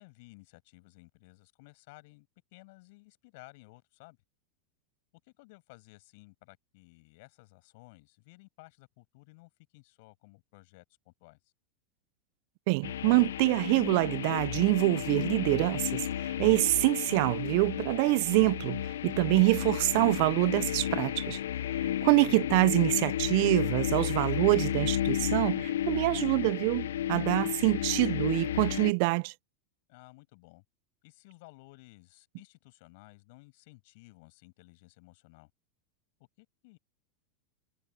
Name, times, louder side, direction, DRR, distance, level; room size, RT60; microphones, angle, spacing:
voice 1, 0.0-4.2 5.2-11.5 29.9-30.6 31.0-35.5 36.4-36.8, left 25 dB, 65° left, 7.6 m, -56 dB
voice 2, 12.7-21.4 22.0-29.3, right 29 dB, 60° right, 0.3 m, -26 dB
sound 1, 12.8-28.9, left 11 dB, 80° left, 0.4 m, -32 dB
hypercardioid pair, 110°, 0 cm